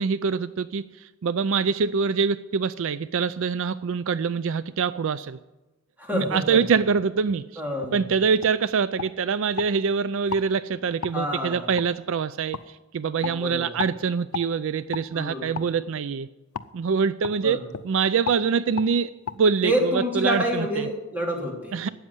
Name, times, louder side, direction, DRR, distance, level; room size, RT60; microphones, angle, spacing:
voice 1, 0.0-5.4 6.1-7.6 7.9-16.3 16.7-17.6 17.8-20.8 21.7-21.9, right 5 dB, 65° right, 15 dB, 0.4 m, -25 dB
voice 2, 6.0-6.6 7.6-8.0 11.1-11.7 13.2-13.8 15.1-15.7 17.4-17.6 19.6-21.8, equal, 10° right, -2 dB, 3.1 m, -28 dB
sound 1, 7.8-8.0 8.4-8.6 9.0-9.7 10.3-10.5 11.0-11.2 11.8-11.9 12.5-12.7 13.2-13.4 13.8-14.0 14.3-14.5 14.9-15.1 15.5-15.7 16.5-16.7 17.2-17.4 17.7-17.9 18.2-18.4 18.8-18.9 19.3-19.4, left 6 dB, 85° left, 0.6 m, -33 dB
12.5 x 8.6 x 9.6 m, 1.1 s
head